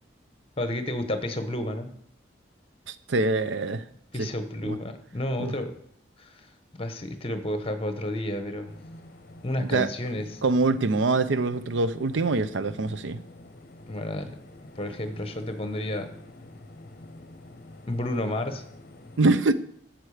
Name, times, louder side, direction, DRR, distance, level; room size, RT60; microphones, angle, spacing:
voice 1, 0.6-1.9 4.1-5.7 6.2-6.4 6.7-8.7 9.4-10.4 13.9-14.4 14.8-16.1 17.9-18.6, left 1 dB, 30° left, 1.1 m, -31 dB
voice 2, 2.9-3.8 4.2-4.3 4.6-4.8 5.4-5.5 9.6-9.9 10.4-13.2 19.2-19.6, right 3 dB, 85° right, 0.7 m, -24 dB
sound 1, 8.7-19.2, left 1 dB, 50° left, 0.8 m, -47 dB
12.5 x 7.7 x 5.0 m
head